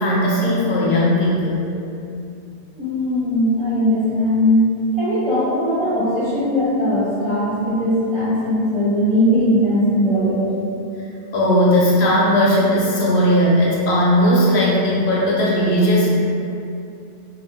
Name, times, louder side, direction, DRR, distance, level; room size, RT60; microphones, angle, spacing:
voice 1, 0.0-1.7 11.3-16.1, equal, 75° left, -6 dB, 0.9 m, -17 dB
voice 2, 2.7-10.5, equal, 30° right, -12 dB, 0.6 m, -19 dB
2.7 x 2.1 x 2.8 m, 2.6 s
omnidirectional pair, 1.1 m